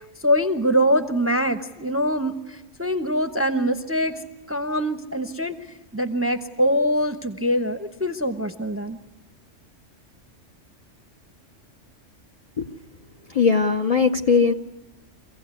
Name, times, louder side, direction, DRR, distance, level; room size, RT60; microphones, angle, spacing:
voice 1, 0.2-4.2 4.5-5.6 5.9-9.0, equal, 15° right, 8 dB, 0.8 m, -23 dB
voice 2, 13.3-14.5, left 5 dB, 35° left, 5 dB, 0.8 m, -19 dB
24.0 x 16.5 x 8.3 m, 1.1 s
omnidirectional pair, 1.3 m